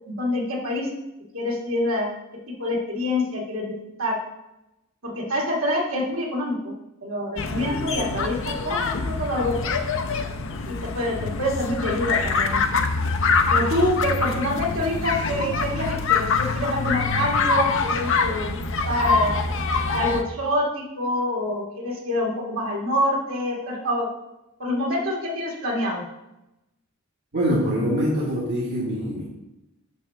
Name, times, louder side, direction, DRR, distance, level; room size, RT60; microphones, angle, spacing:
voice 1, 0.0-0.9 1.3-2.1 2.6-3.7 4.0-4.2 5.0-6.6 7.0-9.7 10.7-12.6 13.5-18.6 18.9-19.4 19.9-24.1 24.6-26.0, left 1 dB, 75° right, -2 dB, 2.4 m, -26 dB
sound 1, 7.4-20.2, left 4 dB, 65° left, 0.7 m, -25 dB
voice 2, 27.3-29.2, equal, 55° right, -6 dB, 1.7 m, -24 dB
9.3 x 3.6 x 6.6 m, 0.91 s
head